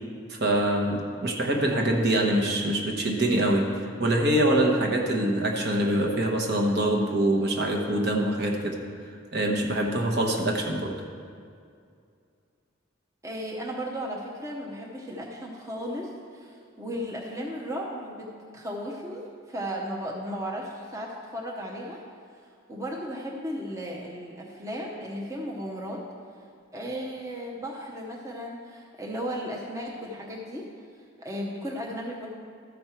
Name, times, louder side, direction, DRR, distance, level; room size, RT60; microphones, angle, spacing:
voice 1, 0.3-8.8 9.3-11.0, right 1 dB, 50° right, 1 dB, 1.0 m, -24 dB
voice 2, 13.2-18.3 18.5-22.0 22.7-26.0 26.7-30.6 31.2-32.3, equal, 15° right, -2 dB, 0.7 m, -35 dB
13.5 x 5.2 x 4.4 m, 2.3 s
head